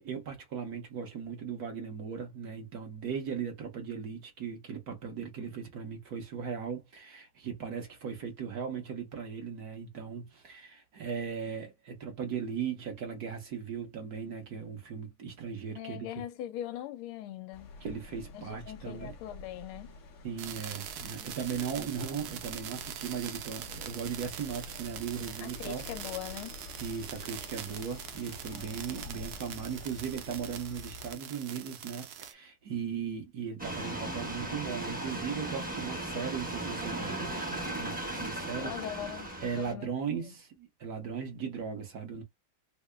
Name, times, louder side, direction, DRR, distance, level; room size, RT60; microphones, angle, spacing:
voice 1, 0.0-16.2 17.8-19.2 20.2-25.9 26.8-38.7 39.4-42.2, right 7 dB, 55° right, 1.3 m, -38 dB
voice 2, 15.7-17.7 18.3-19.9 25.4-26.6 38.6-39.9 40.2-40.3, left 11 dB, 90° left, 1.5 m, -41 dB
sound 1, 17.5-31.2, left 2 dB, 70° left, 0.7 m, -48 dB
sound 2, 20.4-32.3, right 10 dB, 85° right, 1.5 m, -43 dB
sound 3, 33.6-39.7, right 1 dB, 10° right, 0.5 m, -37 dB
3.7 x 2.0 x 3.3 m
omnidirectional pair, 2.3 m